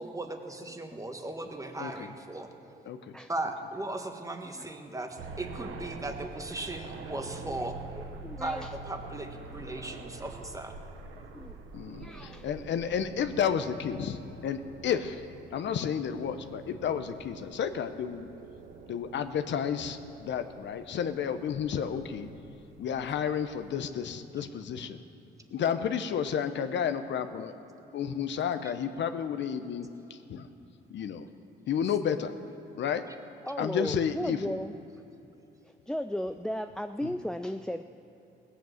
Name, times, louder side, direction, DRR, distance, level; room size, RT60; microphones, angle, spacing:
voice 1, 0.0-2.5 3.3-7.8 8.4-10.7, right 2 dB, 15° right, 5 dB, 1.4 m, -37 dB
voice 2, 1.8-2.1 2.9-3.2 11.7-15.2 15.5-18.3 18.9-22.3 22.8-25.0 25.5-27.5 27.9-30.5 30.9-31.3 31.7-32.3 32.8-33.1 33.6-34.6 37.0-37.1, left 7 dB, 65° left, 10 dB, 0.8 m, -31 dB
sound 1, 5.2-23.7, right 3 dB, 80° right, 1.3 m, -46 dB
voice 3, 8.2-8.7 11.3-11.6 11.9-12.5 33.4-34.7 35.6-37.8, left 1 dB, 5° left, 8 dB, 0.3 m, -35 dB
18.0 x 8.1 x 7.7 m, 3.0 s
cardioid pair, 90°, 20 cm